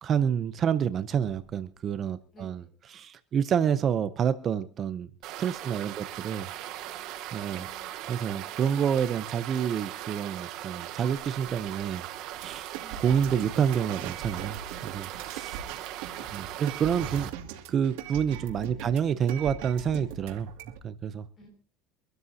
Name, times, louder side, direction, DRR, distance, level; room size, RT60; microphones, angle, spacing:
voice 1, 0.0-2.6 2.9-5.1 5.4-6.5 7.3-7.7 8.1-12.0 12.4-12.7 13.0-15.6 16.3-17.3 17.7-20.5 20.8-21.3, right 8 dB, 30° right, 13 dB, 0.6 m, -28 dB
sound 1, 1.1-2.9, left 5 dB, 90° left, 2.3 m, -57 dB
voice 2, 2.3-2.7 6.4-7.1 7.4-7.9 12.8-13.4 15.6-15.8 16.1-16.8 18.7-19.0 21.4-21.5, left 2 dB, 30° left, 4 dB, 6.1 m, -55 dB
sound 2, 5.2-17.3, right 13 dB, 55° right, 1.2 m, -39 dB
sound 3, 12.4-20.8, right 8 dB, 90° right, 2.3 m, -40 dB
25.0 x 12.5 x 2.8 m, 0.36 s
cardioid pair, 160°, 0 cm